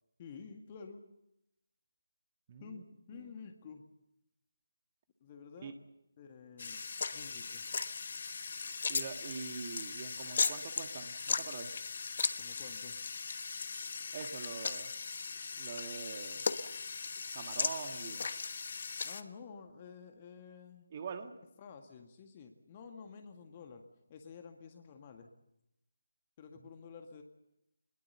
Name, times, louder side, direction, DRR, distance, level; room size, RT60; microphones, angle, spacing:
voice 1, 0.2-1.0 2.6-2.8 3.1-3.8 5.2-5.7 6.2-6.8 7.1-7.7 12.4-13.0 19.0-20.9 21.6-23.8 24.1-25.3 26.4-27.2, left 6 dB, 30° left, 5 dB, 1.8 m, -50 dB
voice 2, 2.5-2.8 3.1-3.3 5.6-5.7 8.9-11.7 14.1-14.9 15.6-16.5 17.3-18.3 20.9-21.3, right 5 dB, 35° right, 7 dB, 1.7 m, -44 dB
sound 1, 6.6-19.2, left 5 dB, 45° left, 1.2 m, -38 dB
23.5 x 21.5 x 7.0 m, 0.84 s
figure-of-eight pair, 150°, 0 cm